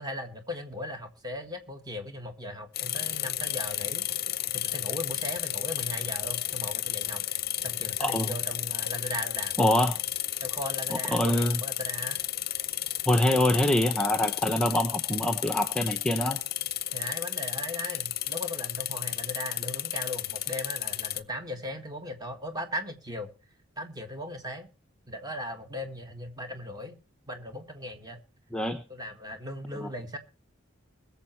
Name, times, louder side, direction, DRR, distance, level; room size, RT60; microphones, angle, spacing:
voice 1, 0.0-4.0 4.5-7.2 7.6-9.6 10.4-12.2 16.9-23.3 23.8-24.7 25.1-27.0 27.3-28.2 28.9-30.2, left 1 dB, 20° right, 1.7 m, -38 dB
sound 1, 2.7-21.2, left 14 dB, 45° left, 0.6 m, -32 dB
voice 2, 8.0-8.3 9.6-10.0 11.1-11.6 13.1-16.4 28.5-28.8 29.8-29.9, left 1 dB, 5° left, 0.8 m, -25 dB
21.5 x 7.1 x 4.5 m
head